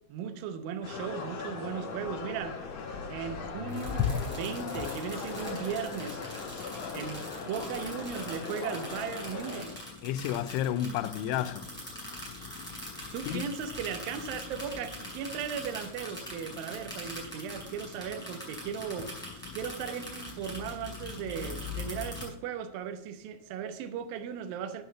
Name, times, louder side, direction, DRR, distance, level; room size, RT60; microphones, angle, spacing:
voice 1, 0.1-2.6 3.1-6.2 6.9-9.8 13.1-19.1 19.5-24.8, right 7 dB, 80° right, 2.1 m, -37 dB
sound 1, 0.8-9.6, left 5 dB, 60° left, 1.7 m, -39 dB
sound 2, 3.7-22.2, left 4 dB, ahead, 4.0 m, -40 dB
voice 2, 10.0-11.7 13.3-13.5, left 11 dB, 85° left, 2.9 m, -31 dB
7.9 x 7.0 x 6.8 m
omnidirectional pair, 5.3 m